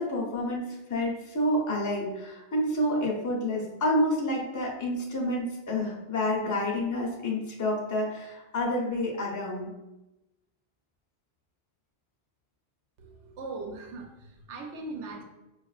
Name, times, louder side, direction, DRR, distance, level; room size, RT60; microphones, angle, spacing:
voice 1, 0.0-9.7, left 1 dB, 20° left, -2 dB, 0.5 m, -29 dB
voice 2, 13.0-15.2, right 3 dB, 85° right, 2 dB, 1.0 m, -40 dB
5.2 x 2.5 x 2.4 m, 0.99 s
omnidirectional pair, 1.2 m